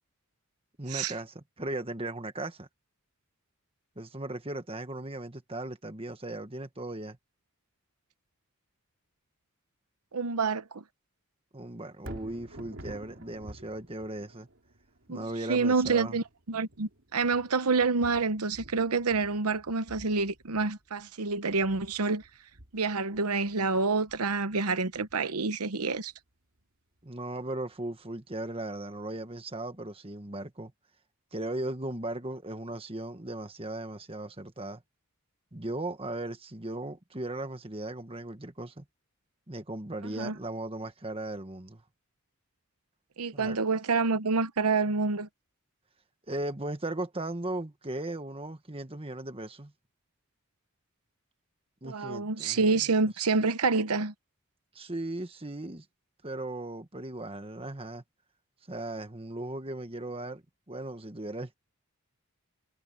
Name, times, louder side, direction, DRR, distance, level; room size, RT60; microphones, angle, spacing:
voice 1, 0.8-2.7 3.9-7.2 11.5-14.5 15.1-16.2 27.0-30.7 31.3-34.8 35.5-38.8 39.5-41.8 43.3-43.6 46.3-49.7 51.8-52.8 54.7-55.8 56.2-58.0 58.7-61.5, right 2 dB, 25° right, 1.5 m, -37 dB
voice 2, 10.1-10.8 15.1-22.2 22.7-26.1 40.0-40.4 43.2-45.3 51.8-54.1, right 4 dB, 90° right, 0.9 m, -28 dB
Thunder, 11.9-26.1 26.6-26.7, right 1 dB, 65° right, 2.6 m, -51 dB
head